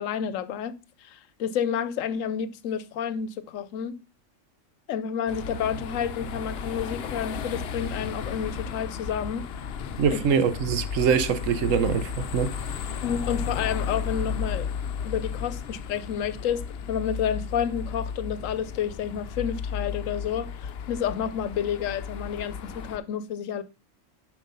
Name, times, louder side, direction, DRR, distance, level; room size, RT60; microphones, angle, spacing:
voice 1, 0.0-4.0 4.9-9.5 10.1-10.2 13.0-14.7 15.0-23.6, left 8 dB, 85° left, 1.0 m, -30 dB
sound 1, 5.3-23.0, left 6 dB, 60° left, 0.8 m, -34 dB
voice 2, 10.0-12.5, right 7 dB, 80° right, 1.2 m, -23 dB
7.4 x 4.7 x 5.5 m
omnidirectional pair, 1.3 m